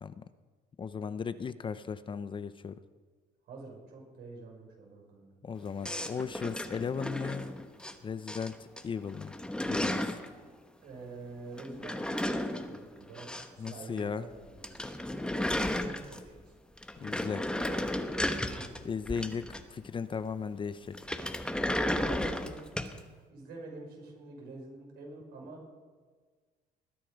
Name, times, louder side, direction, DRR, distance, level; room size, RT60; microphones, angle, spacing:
voice 1, 0.8-2.8 5.4-7.5 8.0-8.6 8.8-9.4 9.7-10.2 13.6-14.3 17.0-17.4 18.8-21.0, left 6 dB, 30° left, 13 dB, 0.6 m, -36 dB
voice 2, 3.5-5.3 10.8-14.7 15.6-16.5 18.3-18.8 21.7-22.6 23.3-25.6, right 3 dB, 75° right, -1 dB, 5.7 m, -46 dB
sound 1, 5.8-7.9 8.3-8.8 9.1-10.3 11.6-13.7 14.0-14.1 14.4-14.5 14.6-16.4 16.8-19.9 20.9-23.0, left 1 dB, 5° left, 1.1 m, -34 dB
20.5 x 10.5 x 5.2 m, 1.5 s
cardioid pair, 110°, 17 cm